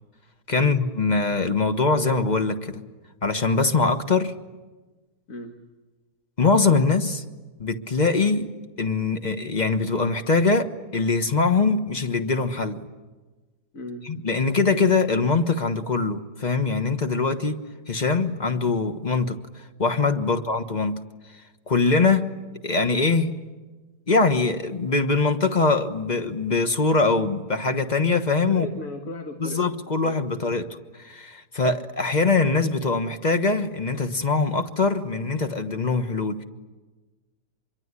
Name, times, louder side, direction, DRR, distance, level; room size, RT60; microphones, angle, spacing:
voice 1, 0.5-2.8 3.2-4.3 6.4-7.2 7.6-8.5 8.8-12.9 14.0-17.6 17.9-21.0 21.7-22.3 22.6-23.3 24.1-28.7 29.4-30.7 31.0-36.4, left 4 dB, 30° left, 8 dB, 1.3 m, -22 dB
voice 2, 5.3-5.6 13.7-14.1 20.2-20.4 28.5-30.2, left 2 dB, 55° left, 4 dB, 2.0 m, -37 dB
26.0 x 23.0 x 9.8 m, 1.2 s
omnidirectional pair, 1.7 m